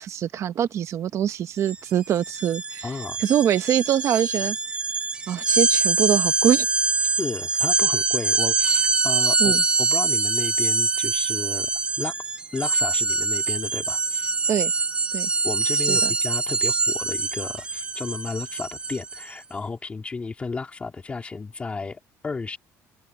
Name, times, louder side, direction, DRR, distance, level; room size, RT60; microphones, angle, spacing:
voice 1, 0.0-4.6 5.3-6.7 9.4-9.6 14.5-14.7 15.1-15.3 15.7-16.1, right 10 dB, 50° right, 0.9 m, -24 dB
sound 1, 1.6-1.8 2.1-19.3, right 4 dB, 15° right, 0.5 m, -24 dB
voice 2, 2.8-3.2 7.2-9.5 9.8-11.7 12.0-12.1 12.5-14.3 15.4-22.6, left 4 dB, 20° left, 2.2 m, -33 dB
open air
cardioid pair, 145°, 6 cm